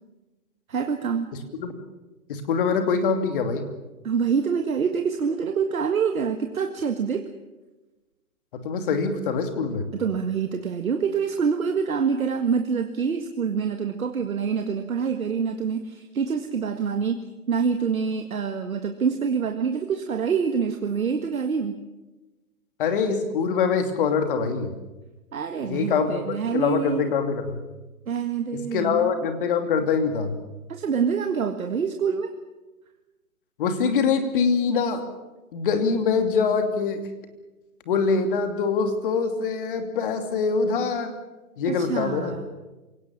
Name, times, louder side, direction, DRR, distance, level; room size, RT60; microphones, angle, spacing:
voice 1, 0.7-1.3 4.0-7.3 9.9-17.2 17.5-21.7 25.3-27.1 28.1-29.1 30.7-32.3 41.7-42.4, right 6 dB, 65° right, 6 dB, 1.8 m, -26 dB
voice 2, 2.3-3.7 8.6-9.9 22.8-24.7 25.6-26.3 26.5-27.6 28.5-30.4 33.6-35.0 35.5-37.1 37.9-41.1 41.6-42.3, left 5 dB, 35° left, 7 dB, 2.8 m, -24 dB
27.5 x 18.0 x 7.5 m, 1.1 s
hypercardioid pair, 145°, 44 cm